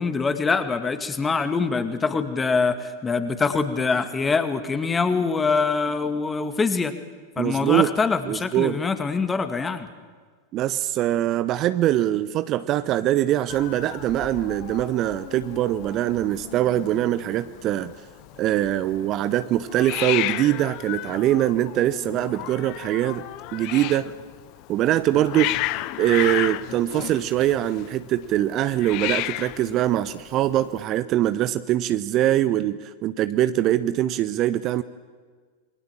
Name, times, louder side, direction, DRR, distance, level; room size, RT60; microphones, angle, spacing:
voice 1, 0.0-6.9 7.4-9.9, left 4 dB, 15° left, 10 dB, 2.2 m, -24 dB
voice 2, 7.4-7.9 8.3-8.8 10.5-17.9 18.4-23.2 23.5-24.1 24.7-25.6 26.0-34.8, right 13 dB, 35° right, 14 dB, 0.9 m, -23 dB
Hiss, 13.5-30.8, left 18 dB, 40° left, 0.8 m, -33 dB
27.5 x 23.0 x 7.6 m, 1.5 s
figure-of-eight pair, 90°, 0 cm